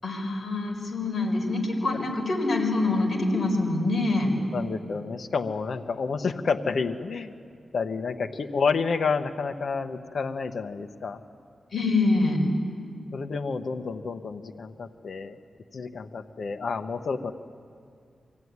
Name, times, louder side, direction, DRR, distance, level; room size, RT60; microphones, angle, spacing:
voice 1, 0.0-4.3 11.7-12.4, left 2 dB, 45° left, 0 dB, 4.7 m, -25 dB
voice 2, 4.5-7.3 7.7-11.2 13.1-15.4 15.7-17.3, left 5 dB, 65° left, 7 dB, 1.0 m, -29 dB
24.0 x 16.5 x 9.6 m, 2.2 s
wide cardioid pair, 115°, 0 cm